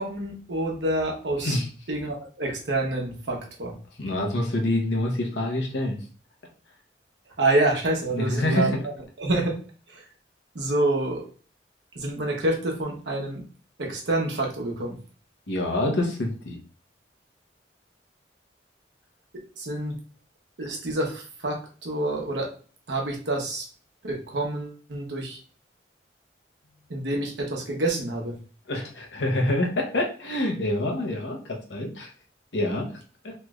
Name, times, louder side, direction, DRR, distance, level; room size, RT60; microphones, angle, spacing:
voice 1, 0.0-1.6 1.9-3.8 7.4-8.8 9.2-9.5 9.9-10.1 10.5-11.3 11.9-13.4 13.8-15.0 19.3-20.0 20.6-22.5 22.9-23.7 24.0-25.4 26.9-28.3, right 2 dB, 80° right, 0 dB, 0.9 m, -27 dB
voice 2, 4.0-6.0 8.1-8.7 15.5-16.6 28.7-32.1 32.5-32.9 33.2-33.3, left 1 dB, 85° left, 1 dB, 0.8 m, -26 dB
3.2 x 2.4 x 3.1 m, 0.39 s
head